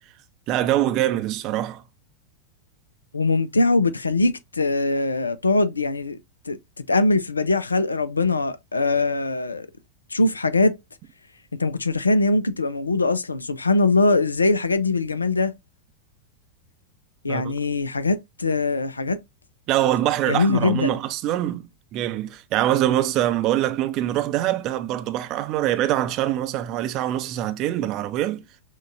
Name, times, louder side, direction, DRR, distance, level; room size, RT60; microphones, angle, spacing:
voice 1, 0.5-1.8 17.3-17.5 19.7-21.6 21.9-28.4, right 13 dB, 40° right, 0.5 m, -24 dB
voice 2, 3.1-6.2 6.5-6.6 6.9-9.7 10.1-10.8 11.6-15.5 17.2-19.2 20.3-21.0, left 3 dB, 80° left, 0.4 m, -22 dB
6.2 x 2.3 x 2.4 m
figure-of-eight pair, 90°, 0 cm